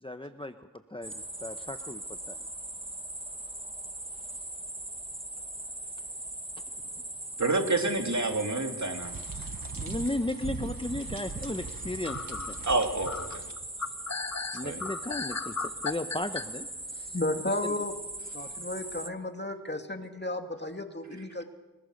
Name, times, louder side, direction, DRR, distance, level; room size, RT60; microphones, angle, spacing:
voice 1, 0.0-2.5 9.8-12.7 14.5-17.2, left 1 dB, 15° left, 8 dB, 1.0 m, -36 dB
sound 1, 1.0-19.1, right 1 dB, 15° right, 1.3 m, -40 dB
voice 2, 7.4-9.1 12.6-13.4 14.6-14.8, right 2 dB, 55° right, 4 dB, 3.1 m, -28 dB
sound 2, 9.0-13.5, right 4 dB, 85° right, 1.3 m, -41 dB
sound 3, 9.4-10.1 10.6-11.2 11.6-11.7 12.0-16.5, left 5 dB, 55° left, 1.1 m, -36 dB
voice 3, 17.1-17.9 18.3-21.4, left 2 dB, 30° left, 5 dB, 2.4 m, -33 dB
29.5 x 20.0 x 6.7 m, 1.2 s
wide cardioid pair, 55°, 33 cm